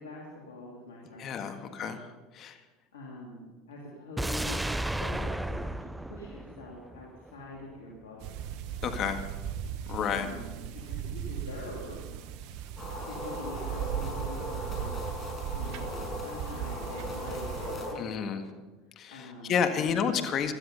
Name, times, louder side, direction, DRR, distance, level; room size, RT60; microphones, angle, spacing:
voice 1, 0.0-1.3 1.6-1.8 2.9-8.5 9.6-12.2 13.0-15.0 15.5-18.6 18.9-20.1, left 1 dB, 90° left, -3 dB, 3.1 m, -45 dB
voice 2, 1.1-2.1 2.3-2.6 8.8-9.3 9.9-10.3 18.0-18.4 19.0-20.5, left 7 dB, 45° left, 7 dB, 1.7 m, -30 dB
sound 1, 4.2-7.3 7.6-7.7, right 1 dB, 5° right, 0.5 m, -33 dB
sound 2, 8.2-17.8, right 9 dB, 65° right, 1.1 m, -37 dB
sound 3, 12.8-17.9, left 1 dB, 25° left, 5.8 m, -38 dB
17.0 x 12.5 x 5.5 m, 1.2 s
hypercardioid pair, 90°, 0 cm